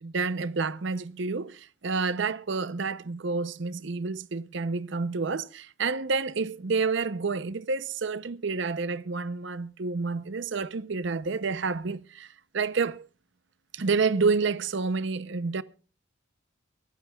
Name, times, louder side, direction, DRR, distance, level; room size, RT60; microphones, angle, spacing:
voice 1, 0.0-12.3 12.5-13.1 13.7-15.6, right 4 dB, 55° right, 0.6 m, -29 dB
23.5 x 12.5 x 2.3 m
head